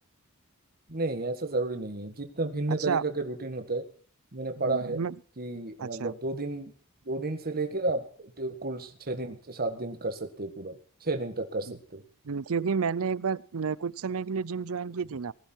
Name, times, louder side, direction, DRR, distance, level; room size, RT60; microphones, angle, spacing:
voice 1, 0.9-3.8 4.3-5.0 5.4-6.7 7.0-12.0, right 2 dB, 45° right, 1.7 m, -32 dB
voice 2, 4.6-5.1 5.8-6.1 12.2-15.3, right 5 dB, 70° right, 0.6 m, -30 dB
19.5 x 12.0 x 4.6 m
head